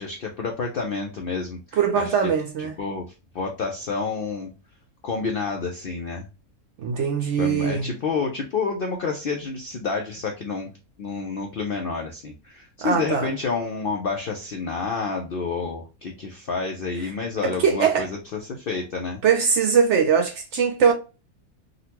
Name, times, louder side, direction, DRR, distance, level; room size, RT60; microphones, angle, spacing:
voice 1, 0.0-1.6 2.0-2.1 2.8-3.0 3.3-4.5 5.0-6.2 7.4-10.7 11.0-19.2, left 4 dB, 65° left, 0.5 m, -29 dB
voice 2, 1.7-2.7 6.8-7.9 12.8-13.3 17.4-18.1 19.2-20.9, right 6 dB, 65° right, 0.7 m, -21 dB
3.8 x 2.1 x 2.8 m
omnidirectional pair, 1.6 m